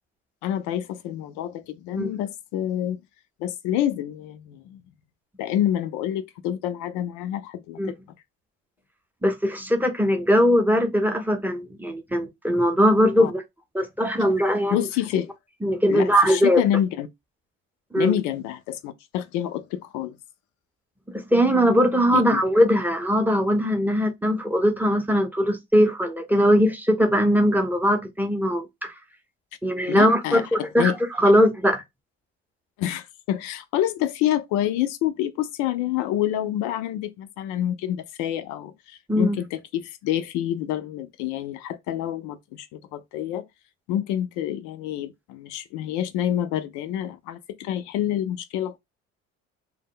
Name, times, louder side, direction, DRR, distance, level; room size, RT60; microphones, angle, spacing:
voice 1, 0.4-3.0 3.4-4.8 5.4-8.0 13.2-13.3 14.7-15.3 15.9-17.1 17.9-20.2 22.1-22.4 29.9-30.9 32.8-43.4 43.9-48.8, left 11 dB, 80° left, 0.4 m, -27 dB
voice 2, 9.2-13.4 13.7-14.8 15.6-16.6 17.9-18.2 21.1-28.9 29.6-31.8 39.1-39.4, equal, 5° right, 0.6 m, -20 dB
2.0 x 2.0 x 3.6 m
supercardioid pair, 85°, 29 cm